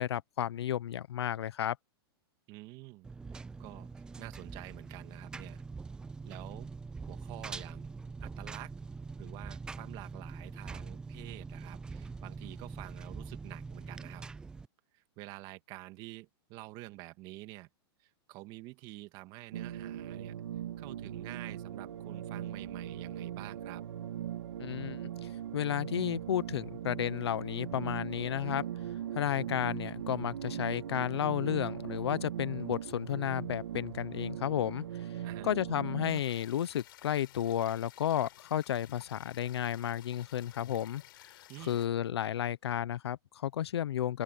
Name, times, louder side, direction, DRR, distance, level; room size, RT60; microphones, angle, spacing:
voice 1, 0.0-1.8 24.6-28.7 29.1-35.1 35.4-44.2, left 10 dB, 85° left, 1.1 m, -33 dB
voice 2, 2.5-3.9 4.2-5.6 6.2-6.7 7.1-7.9 8.2-8.7 9.2-14.3 14.9-17.7 18.0-20.3 20.8-23.8 35.2-35.5 41.5-41.8, right 20 dB, 35° right, 2.3 m, -48 dB
Engine, 3.0-14.7, right 4 dB, 5° right, 0.4 m, -44 dB
sound 1, 19.5-36.2, right 10 dB, 80° right, 2.2 m, -40 dB
sound 2, 36.1-41.9, left 15 dB, 60° left, 5.6 m, -55 dB
open air
hypercardioid pair, 155°, 13 cm